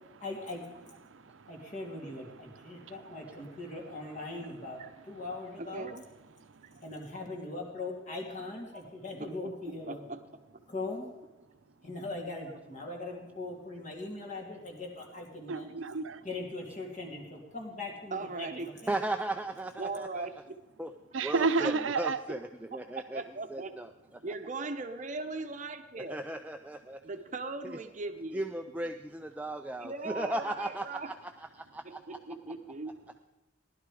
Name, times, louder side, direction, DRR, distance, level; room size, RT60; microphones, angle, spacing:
voice 1, 0.2-0.6 1.5-4.8 5.1-5.9 6.8-10.1 10.7-11.1 11.8-15.7 16.2-18.9, left 2 dB, 40° left, 0 dB, 2.7 m, -40 dB
voice 2, 1.1-1.5 2.9-3.0 6.4-6.8 15.5-16.2 21.1-22.2, right 4 dB, 85° right, 11 dB, 0.7 m, -31 dB
voice 3, 5.6-6.0 8.7-8.8 9.2-9.3 9.7-10.2 18.1-18.7 19.8-20.5 21.6-21.7 22.7-23.8 24.2-26.2 27.0-28.5 29.8-31.1 31.8-32.9, right 3 dB, 40° right, 7 dB, 0.8 m, -39 dB
voice 4, 18.9-20.3 20.8-20.9 21.2-23.2 23.5-23.9 26.1-27.0 27.6-27.8 28.3-32.2, right 1 dB, 10° right, 5 dB, 0.4 m, -36 dB
16.0 x 11.5 x 4.9 m, 1.1 s
head